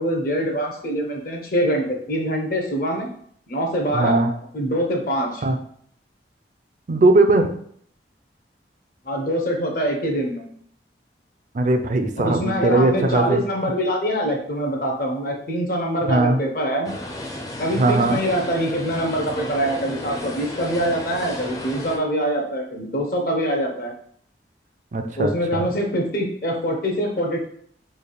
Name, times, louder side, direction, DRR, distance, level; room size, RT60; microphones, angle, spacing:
voice 1, 0.0-3.1 3.5-4.2 4.5-5.4 9.0-10.5 12.2-16.9 17.6-23.9 25.2-27.4, equal, 50° left, 1 dB, 0.7 m, -24 dB
voice 2, 3.9-4.3 5.4-5.6 6.9-7.5 11.5-13.4 16.1-16.4 17.8-18.2 24.9-25.6, right 2 dB, 45° right, 6 dB, 0.4 m, -19 dB
sound 1, 16.8-22.0, left 1 dB, 20° left, 0.5 m, -33 dB
3.3 x 2.4 x 3.9 m, 0.62 s
head